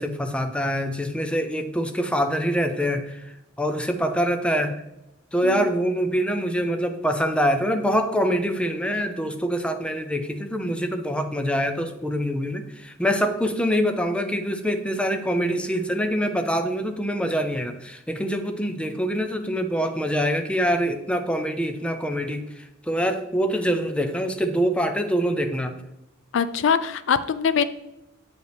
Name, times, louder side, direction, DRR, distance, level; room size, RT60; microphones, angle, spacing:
voice 1, 0.0-4.8 5.3-25.7, equal, 5° left, 6 dB, 0.5 m, -25 dB
voice 2, 26.3-27.6, left 6 dB, 65° left, 13 dB, 0.4 m, -22 dB
7.8 x 5.2 x 3.4 m, 0.90 s
head